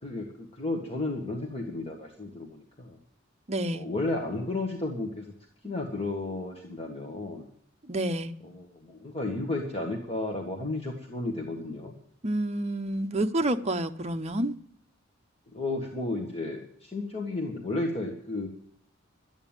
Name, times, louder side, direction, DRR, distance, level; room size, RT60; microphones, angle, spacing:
voice 1, 0.0-3.0 3.7-5.3 5.6-7.5 8.4-11.9 15.5-18.5, left 2 dB, 30° left, 1.7 m, -33 dB
voice 2, 3.5-3.8 7.9-8.3 12.2-14.5, right 1 dB, 35° right, 0.8 m, -28 dB
12.5 x 9.3 x 9.0 m
head